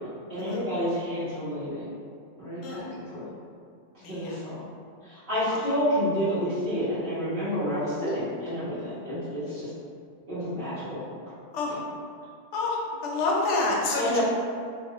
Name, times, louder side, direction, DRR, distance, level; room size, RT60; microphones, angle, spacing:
voice 1, 0.3-1.9 2.4-3.3 4.1-4.6 5.0-9.7 10.3-11.0 11.7-11.8 13.9-14.2, equal, 50° right, -16 dB, 1.2 m, -29 dB
voice 2, 4.0-4.4 5.5-5.6 11.5-11.8 12.5-14.2, left 2 dB, 80° left, -3 dB, 0.9 m, -28 dB
2.8 x 2.3 x 2.9 m, 2.3 s
omnidirectional pair, 1.2 m